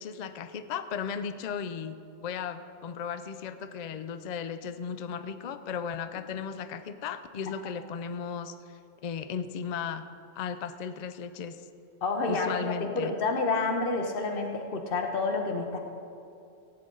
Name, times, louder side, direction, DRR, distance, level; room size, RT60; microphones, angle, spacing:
voice 1, 0.0-2.0 2.2-10.0 10.3-11.6 12.3-13.1, left 7 dB, 80° left, 11 dB, 0.3 m, -36 dB
voice 2, 12.0-15.8, left 3 dB, 45° left, 3 dB, 1.2 m, -29 dB
15.5 x 9.5 x 3.8 m, 2.6 s
omnidirectional pair, 1.4 m